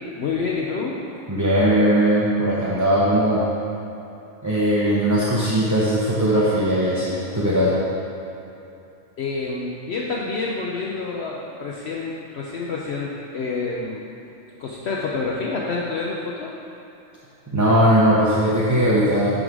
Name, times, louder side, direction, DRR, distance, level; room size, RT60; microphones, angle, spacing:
voice 1, 0.2-1.0 9.2-14.1 14.6-16.6, left 4 dB, 60° left, -3 dB, 0.9 m, -28 dB
voice 2, 1.3-3.4 4.4-7.8 17.5-19.4, equal, 15° right, -8 dB, 0.7 m, -19 dB
11.0 x 3.9 x 4.7 m, 2.8 s
omnidirectional pair, 1.4 m